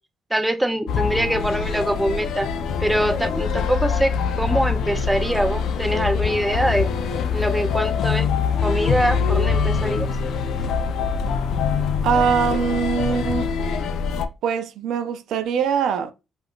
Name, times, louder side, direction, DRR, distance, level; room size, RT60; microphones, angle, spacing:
voice 1, 0.3-2.5 2.8-4.1 4.4-6.9 7.3-8.3 8.6-10.1, right 1 dB, 5° right, 0.5 m, -23 dB
sound 1, 0.9-14.3, left 6 dB, 75° left, 0.3 m, -24 dB
voice 2, 12.0-13.5 14.4-16.1, right 7 dB, 80° right, 0.3 m, -22 dB
3.4 x 2.3 x 2.3 m
cardioid pair, 90°, 0 cm